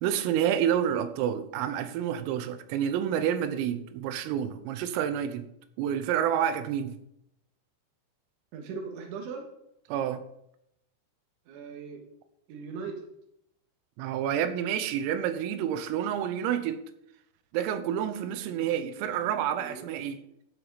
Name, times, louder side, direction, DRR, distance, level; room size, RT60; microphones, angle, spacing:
voice 1, 0.0-5.5 5.8-6.9 9.9-10.2 14.0-16.8 17.5-20.2, right 9 dB, 85° right, 11 dB, 3.6 m, -29 dB
voice 2, 8.5-9.5 11.5-12.0 12.5-13.1 18.4-20.2, right 5 dB, 70° right, 2 dB, 3.9 m, -41 dB
12.0 x 8.9 x 4.0 m, 0.79 s
omnidirectional pair, 6.0 m